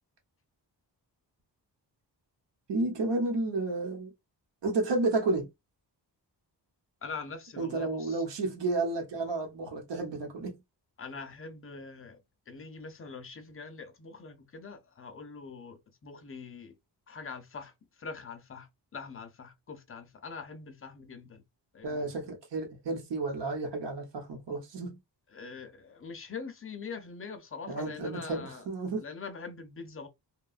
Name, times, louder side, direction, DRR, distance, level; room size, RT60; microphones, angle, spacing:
voice 1, 2.7-4.1 4.6-5.5 7.6-10.6 21.8-25.0 27.7-29.0, right 3 dB, 80° right, 1.0 m, -31 dB
voice 2, 7.0-8.2 11.0-12.2 12.5-16.7 17.1-21.4 21.7-22.1 25.3-28.7 29.0-30.1, left 5 dB, 35° left, 0.4 m, -43 dB
2.9 x 2.2 x 2.4 m
wide cardioid pair, 165°, 42 cm